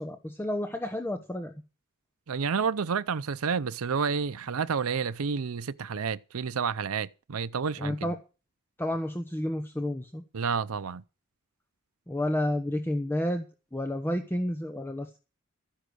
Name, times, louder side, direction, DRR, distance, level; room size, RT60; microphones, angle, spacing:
voice 1, 0.0-1.5 7.8-8.2 8.8-10.2 12.1-13.4 13.7-15.2, left 1 dB, 10° left, 1.1 m, -30 dB
voice 2, 2.3-7.9 10.3-11.0, right 6 dB, 80° right, 0.6 m, -30 dB
13.5 x 10.5 x 6.3 m
head